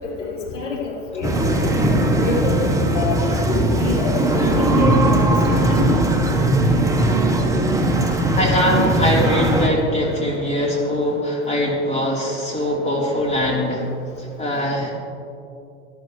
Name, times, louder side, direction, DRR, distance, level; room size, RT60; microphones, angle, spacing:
voice 1, 0.0-1.6 2.2-5.2 5.4-5.9, left 4 dB, 80° left, -5 dB, 3.5 m, -26 dB
sound 1, 1.2-9.7, right 1 dB, 10° right, 1.3 m, -19 dB
voice 2, 8.3-13.9 14.2-14.9, equal, 20° left, -3 dB, 3.8 m, -22 dB
19.0 x 12.5 x 3.2 m, 2.5 s
figure-of-eight pair, 85°, 36 cm